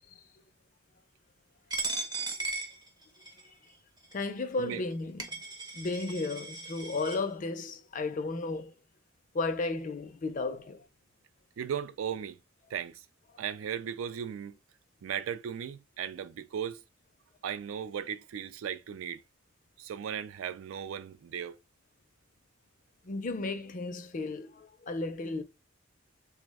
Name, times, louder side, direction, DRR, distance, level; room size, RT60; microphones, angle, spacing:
Coin (dropping), 1.7-3.5 4.1-4.2 4.9-5.0 5.2-7.2, right 3 dB, 20° right, 0.5 m, -37 dB
voice 1, 4.1-5.4 5.7-8.7 9.3-10.8 23.0-25.4, left 3 dB, 40° left, 0.4 m, -34 dB
voice 2, 11.6-12.4 12.7-13.0 13.4-14.6 15.0-16.8 17.4-19.2 19.8-21.6, right 8 dB, 85° right, 0.3 m, -36 dB
3.3 x 2.1 x 3.3 m
head